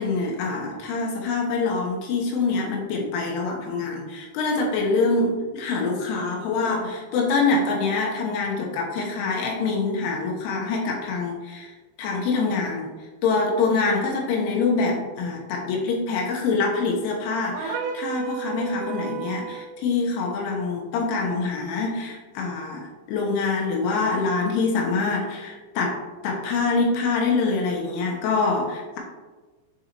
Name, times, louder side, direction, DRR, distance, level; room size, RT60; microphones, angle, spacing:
voice 1, 0.0-11.7 12.0-12.9 13.2-29.0, left 4 dB, 80° left, -1 dB, 3.4 m, -25 dB
sound 1, 17.5-19.7, right 7 dB, 85° right, 3.2 m, -32 dB
9.5 x 4.1 x 2.9 m, 1.3 s
omnidirectional pair, 5.8 m